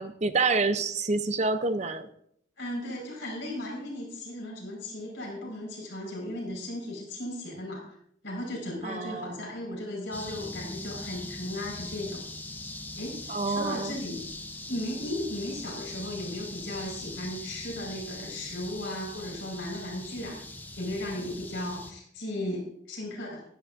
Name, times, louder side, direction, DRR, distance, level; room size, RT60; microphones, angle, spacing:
voice 1, 0.0-2.1 8.8-9.5 13.3-14.0, right 3 dB, 35° right, 10 dB, 0.7 m, -28 dB
voice 2, 2.6-8.0 8.2-12.2 12.9-14.2 14.7-20.4 20.8-23.4, left 1 dB, 75° left, -2 dB, 5.0 m, -36 dB
sound 1, 10.1-21.9, left 2 dB, 10° left, 0.7 m, -41 dB
15.5 x 12.5 x 2.6 m, 0.68 s
head